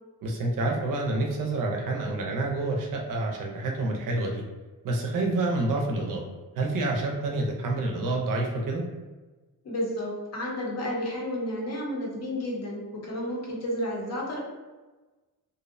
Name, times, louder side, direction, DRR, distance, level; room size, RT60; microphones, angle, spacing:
voice 1, 0.2-4.4 4.8-6.3 6.6-8.8, right 2 dB, 60° right, 1 dB, 0.5 m, -28 dB
voice 2, 9.6-14.4, equal, 45° left, -3 dB, 0.7 m, -31 dB
2.6 x 2.0 x 2.5 m, 1.2 s
wide cardioid pair, 145°, 36 cm